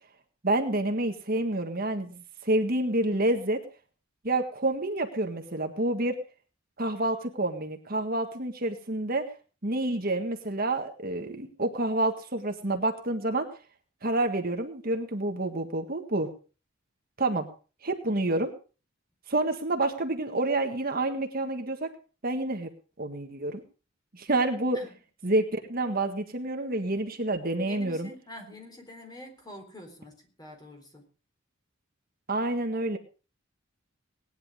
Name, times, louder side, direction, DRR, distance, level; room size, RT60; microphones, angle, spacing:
voice 1, 0.4-3.6 4.2-6.2 6.8-9.3 9.6-13.5 14.0-16.3 17.2-17.5 17.8-18.5 19.3-21.9 22.2-22.7 23.0-23.6 24.1-24.8 25.2-28.1 32.3-33.0, right 2 dB, 45° right, 5 dB, 1.7 m, -28 dB
voice 2, 27.6-31.0, left 1 dB, 20° left, 3 dB, 4.0 m, -46 dB
18.5 x 10.5 x 5.0 m, 0.37 s
head